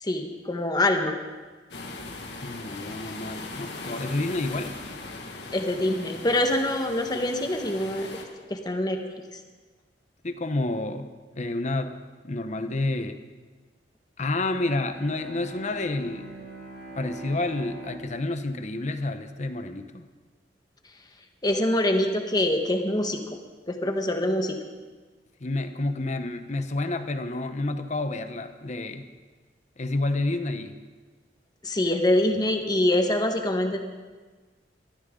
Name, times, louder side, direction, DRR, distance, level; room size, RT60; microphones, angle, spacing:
voice 1, 0.0-1.1 5.5-8.1 8.5-9.0 21.4-23.2 23.7-24.6 31.6-33.8, left 1 dB, 25° left, 4 dB, 1.4 m, -24 dB
sound 1, 1.7-8.2, left 3 dB, 75° left, 1.9 m, -39 dB
voice 2, 2.4-4.8 10.2-12.0 12.2-13.2 14.2-16.3 16.9-20.1 25.4-29.1 29.8-30.8, left 2 dB, 40° left, 9 dB, 0.9 m, -29 dB
Bowed string instrument, 14.5-19.7, right 1 dB, 70° right, 5.9 m, -43 dB
22.0 x 14.0 x 3.8 m, 1.4 s
head